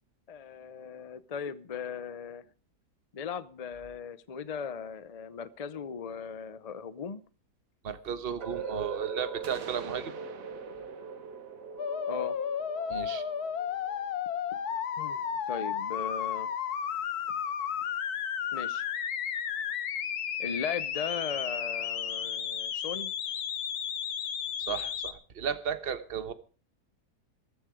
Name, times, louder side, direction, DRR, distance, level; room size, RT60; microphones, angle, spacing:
voice 1, 0.3-2.4 3.1-7.2 12.1-12.4 15.0-16.5 18.5-18.8 20.4-23.1, left 6 dB, 50° left, 16 dB, 0.4 m, -38 dB
voice 2, 7.8-10.1 12.9-13.2 24.6-26.3, right 7 dB, 40° right, 11 dB, 1.2 m, -34 dB
sound 1, 8.4-14.3, right 5 dB, 85° right, 2.1 m, -41 dB
sound 2, 9.4-13.2, right 7 dB, 60° right, 1.4 m, -49 dB
sound 3, 11.8-25.1, left 8 dB, 70° left, 1.6 m, -33 dB
14.5 x 14.0 x 4.9 m, 0.38 s
omnidirectional pair, 1.7 m